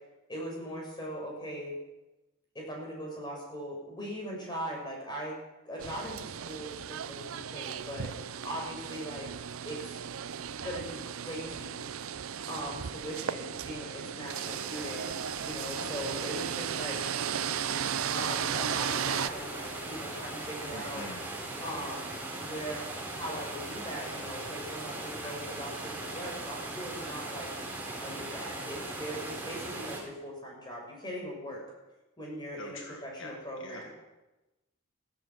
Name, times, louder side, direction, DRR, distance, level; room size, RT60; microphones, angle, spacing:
voice 1, 0.3-1.7 2.5-5.4 5.6-8.1 8.4-9.3 9.6-10.0 10.6-11.8 12.5-15.1 15.4-17.0 18.1-21.0 21.6-22.1 22.4-22.9 23.1-27.5 28.0-31.6 32.2-33.9, equal, 20° left, -1 dB, 6.2 m, -40 dB
sound 1, 5.8-19.3, right 8 dB, 90° right, 0.6 m, -35 dB
sound 2, 14.3-30.0, right 2 dB, 10° right, 4.3 m, -40 dB
voice 2, 15.8-16.5 20.7-21.2 25.2-25.4 32.6-33.9, left 2 dB, 65° left, 3 dB, 1.7 m, -46 dB
16.0 x 12.0 x 7.5 m, 1.0 s
head